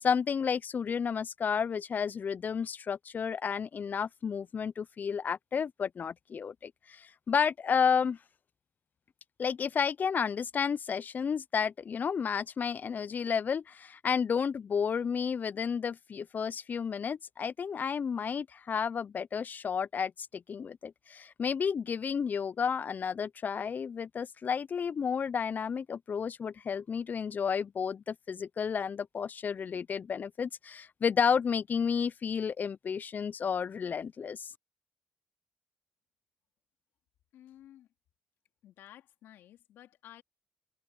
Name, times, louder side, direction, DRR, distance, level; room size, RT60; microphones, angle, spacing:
voice 1, 0.0-8.2 9.4-34.5, left 6 dB, 50° left, 0.7 m, -31 dB
voice 2, 37.3-37.9 38.6-40.2, left 12 dB, 75° left, 3.4 m, -54 dB
open air
hypercardioid pair, 40°, 4 cm